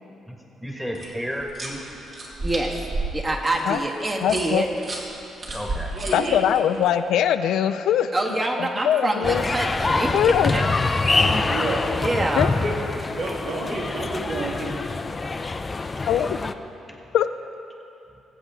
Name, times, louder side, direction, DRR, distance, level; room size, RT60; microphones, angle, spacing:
voice 1, 0.6-1.8 5.5-6.1 16.9-17.0, equal, 5° right, 0 dB, 1.6 m, -32 dB
sound 1, 0.9-6.9 9.5-10.9, right 2 dB, 50° right, 2.4 m, -34 dB
voice 2, 2.4-4.7 8.1-10.6 10.9-11.5 11.9-12.5, right 2 dB, 30° right, 0 dB, 1.5 m, -26 dB
voice 3, 4.2-4.6 6.1-8.1 8.8-9.4 10.1-10.5 12.4-12.5 16.1-16.4 17.1-17.3, left 10 dB, 80° left, 11 dB, 0.4 m, -21 dB
voice 4, 5.9-6.4 11.0-14.7, right 1 dB, 70° right, -4 dB, 2.9 m, -30 dB
sound 2, 9.2-16.5, left 3 dB, 25° left, 0.5 m, -25 dB
20.5 x 8.1 x 3.7 m, 2.9 s
cardioid pair, 90°, 0 cm